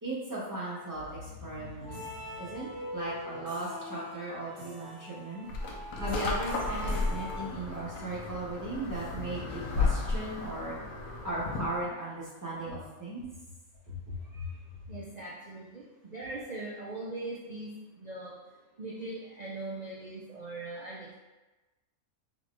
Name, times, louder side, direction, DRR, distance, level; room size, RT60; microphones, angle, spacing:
voice 1, 0.0-2.0 2.4-5.4 6.0-10.7 11.2-13.2 13.9-14.6, right 1 dB, 15° right, -8 dB, 1.1 m, -37 dB
sound 1, 0.9-3.9 8.9-12.1, left 3 dB, 50° left, 0.7 m, -49 dB
sound 2, 1.8-8.1, left 1 dB, 60° right, 1.2 m, -43 dB
sound 3, 5.5-11.9, left 3 dB, 80° left, 1.1 m, -34 dB
voice 2, 14.9-21.1, right 2 dB, 85° right, -5 dB, 0.3 m, -41 dB
3.8 x 3.1 x 3.2 m, 1.1 s
omnidirectional pair, 1.4 m